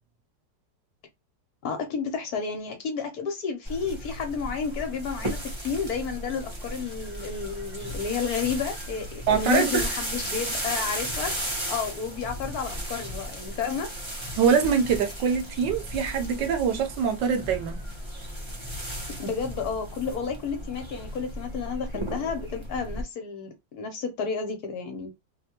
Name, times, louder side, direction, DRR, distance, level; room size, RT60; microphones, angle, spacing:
voice 1, 1.6-13.9 19.2-25.1, left 6 dB, 65° left, 1.1 m, -31 dB
sound 1, 3.7-23.0, equal, 50° right, 0.3 m, -35 dB
voice 2, 9.3-9.9 14.4-17.8, right 6 dB, 75° right, 1.3 m, -24 dB
3.3 x 2.1 x 2.8 m
omnidirectional pair, 2.0 m